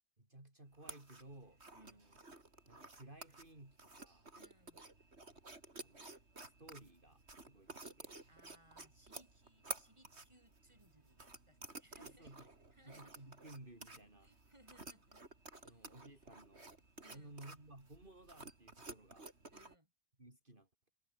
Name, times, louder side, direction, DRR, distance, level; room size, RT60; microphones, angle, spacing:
voice 1, 0.2-2.2 2.7-4.3 5.7-8.2 12.0-12.5 12.8-14.3 15.6-16.7 17.1-19.3 20.2-20.9, right 1 dB, 45° right, 5.2 m, -58 dB
sound 1, 0.7-19.8, right 2 dB, 60° right, 4.0 m, -54 dB
voice 2, 1.7-2.1 4.3-4.9 8.3-13.1 13.9-15.2 15.5-16.1 17.0-17.4 19.5-19.9, right 1 dB, 25° right, 8.0 m, -67 dB
omnidirectional pair, 1.3 m